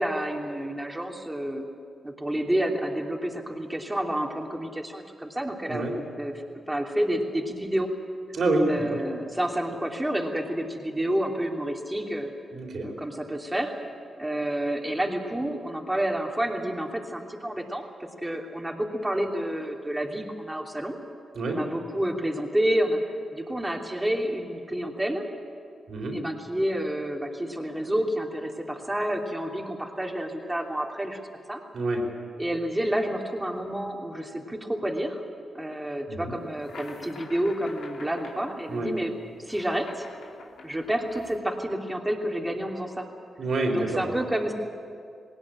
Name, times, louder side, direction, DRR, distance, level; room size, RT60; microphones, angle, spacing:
voice 1, 0.0-1.7 2.0-5.8 6.2-6.3 6.7-7.9 8.7-12.3 12.8-13.7 14.2-17.8 18.2-21.0 21.5-23.0 23.3-25.2 26.1-31.2 31.5-31.6 32.4-35.2 35.5-39.1 39.4-40.1 40.6-43.1 43.7-44.5, right 1 dB, 10° right, 1 dB, 2.9 m, -29 dB
voice 2, 5.7-6.0 8.3-9.0 12.5-12.9 21.3-21.6 25.9-26.2 31.7-32.1 36.1-36.4 38.7-39.0 43.4-44.1, right 2 dB, 70° right, 2 dB, 4.3 m, -27 dB
sound 1, 36.4-41.4, left 4 dB, 80° left, 2.6 m, -46 dB
19.0 x 18.5 x 8.8 m, 2.2 s
cardioid pair, 60°, 0 cm